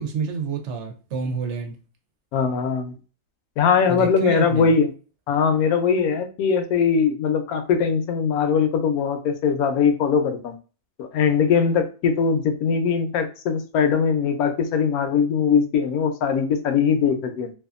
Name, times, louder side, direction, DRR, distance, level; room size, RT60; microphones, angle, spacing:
voice 1, 0.0-1.8 3.9-4.7, right 5 dB, 60° right, 0.8 m, -28 dB
voice 2, 2.3-2.9 3.6-4.9 5.3-10.6 11.0-17.5, left 6 dB, 75° left, 1.0 m, -21 dB
2.7 x 2.3 x 2.4 m
omnidirectional pair, 1.6 m